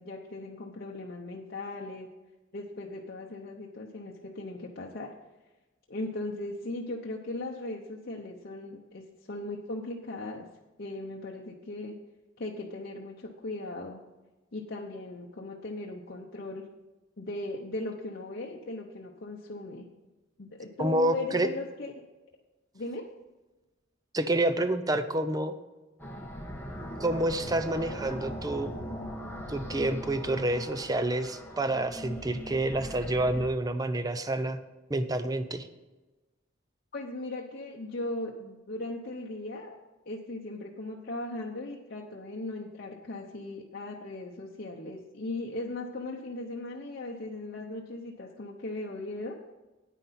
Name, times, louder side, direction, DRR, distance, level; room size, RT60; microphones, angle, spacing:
voice 1, 0.0-2.1 2.5-5.1 5.9-10.5 10.8-12.0 12.4-14.0 14.5-16.6 17.2-19.9 20.4-21.9 22.7-23.1 36.9-39.8 40.1-49.4, left 2 dB, 55° left, -1 dB, 0.8 m, -38 dB
voice 2, 20.8-21.5 24.1-25.5 27.0-28.7 29.5-34.6 34.9-35.7, right 1 dB, 20° right, 10 dB, 0.6 m, -28 dB
sound 1, 26.0-33.5, equal, 10° left, 1.3 m, -40 dB
9.4 x 9.2 x 4.2 m, 1.2 s
head